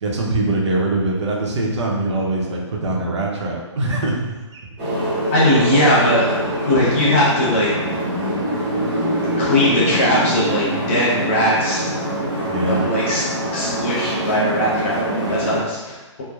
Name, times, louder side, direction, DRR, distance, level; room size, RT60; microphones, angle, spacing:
voice 1, 0.0-4.3 12.5-12.9, right 2 dB, 65° right, -2 dB, 0.7 m, -22 dB
sound 1, 4.8-15.6, right 1 dB, 20° right, 0.8 m, -24 dB
voice 2, 5.3-6.4 6.7-8.0 9.2-11.9 12.7-13.2 13.5-16.2, left 1 dB, 25° left, -7 dB, 0.7 m, -19 dB
3.1 x 2.0 x 2.2 m, 1.2 s
hypercardioid pair, 165°, 16 cm